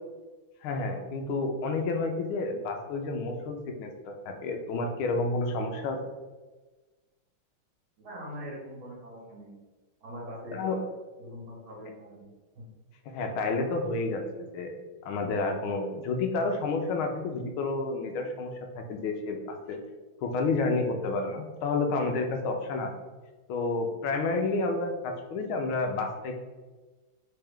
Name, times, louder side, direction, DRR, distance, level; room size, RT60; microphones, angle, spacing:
voice 1, 0.6-6.0 10.5-10.8 13.1-14.7 15.0-19.8 20.2-22.9 23.5-26.4, left 3 dB, 85° left, 4 dB, 1.5 m, -30 dB
voice 2, 8.0-9.6 10.0-10.7 11.2-12.3 12.5-12.7, equal, 70° right, -6 dB, 2.5 m, -42 dB
4.4 x 3.3 x 3.5 m, 1.3 s
omnidirectional pair, 2.3 m